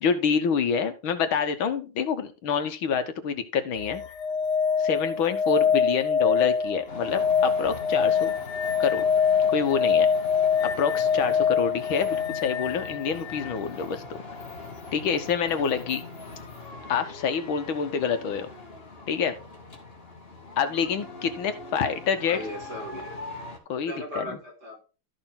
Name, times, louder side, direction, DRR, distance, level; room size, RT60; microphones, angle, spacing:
voice 1, 0.0-4.0 4.8-8.3 8.8-9.0 9.5-10.1 10.6-14.0 14.9-16.0 16.9-18.5 19.1-19.4 20.6-22.4 23.7-24.4, left 6 dB, 75° left, 9 dB, 2.0 m, -27 dB
sound 1, 3.8-13.6 15.9-16.0, left 6 dB, 60° left, 1.4 m, -24 dB
sound 2, 6.9-23.6, left 3 dB, 30° left, 2.4 m, -42 dB
voice 2, 22.3-23.2 23.7-24.8, left 1 dB, 50° right, -1 dB, 4.9 m, -37 dB
13.0 x 6.6 x 3.7 m, 0.32 s
omnidirectional pair, 2.2 m